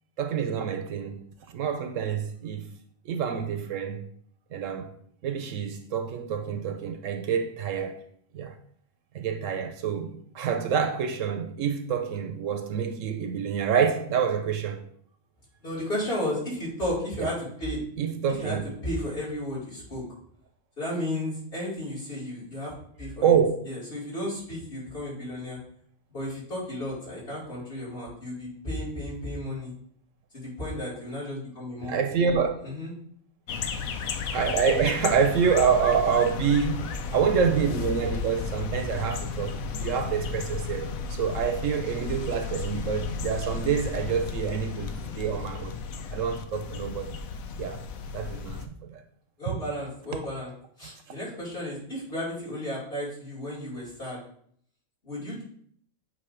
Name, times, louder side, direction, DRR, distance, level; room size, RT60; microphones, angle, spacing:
voice 1, 0.2-1.3 1.5-2.7 3.0-4.0 4.5-4.9 5.2-8.0 8.3-8.5 9.1-14.8 17.2-17.3 18.0-18.6 23.2-23.6 31.8-32.5 34.3-45.8 46.1-47.2 47.6-47.8 48.1-49.0, right 7 dB, 70° right, 1.0 m, -27 dB
voice 2, 15.6-17.8 18.3-20.0 20.8-22.7 23.0-23.3 23.6-25.6 26.1-29.7 30.3-32.0 32.6-32.9 49.4-50.5 50.8-54.2 55.0-55.4, left 1 dB, 45° left, 2.9 m, -33 dB
sound 1, 33.5-48.7, left 5 dB, 85° left, 1.0 m, -34 dB
8.1 x 2.7 x 4.9 m
omnidirectional pair, 1.4 m